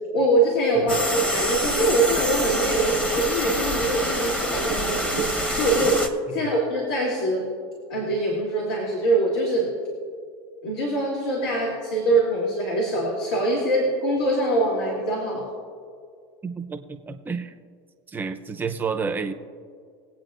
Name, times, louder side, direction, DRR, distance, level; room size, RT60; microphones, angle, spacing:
voice 1, 0.1-6.0 6.3-7.5 7.9-9.7 10.6-15.5, right 1 dB, 80° left, -3 dB, 3.0 m, -23 dB
sound 1, 0.9-6.1, equal, 10° left, 1.0 m, -26 dB
voice 2, 16.4-17.5 18.1-19.3, right 5 dB, 15° right, 5 dB, 0.7 m, -30 dB
22.5 x 8.6 x 2.6 m, 2.2 s
supercardioid pair, 130°, 12 cm